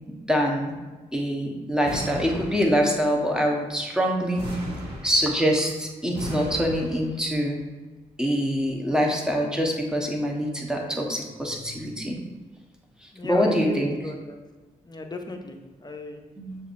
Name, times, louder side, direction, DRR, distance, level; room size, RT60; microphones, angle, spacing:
voice 1, 0.3-0.8 1.1-4.5 5.0-7.6 8.2-12.2 13.2-14.0 16.4-16.6, equal, 5° right, 0 dB, 1.0 m, -24 dB
sound 1, 1.8-3.1 4.4-5.6 6.1-7.3, equal, 75° right, 1.2 m, -36 dB
voice 2, 13.1-14.4 14.8-16.2, left 2 dB, 25° left, 4 dB, 0.7 m, -36 dB
6.5 x 2.6 x 2.5 m, 1.3 s
supercardioid pair, 40°, 17 cm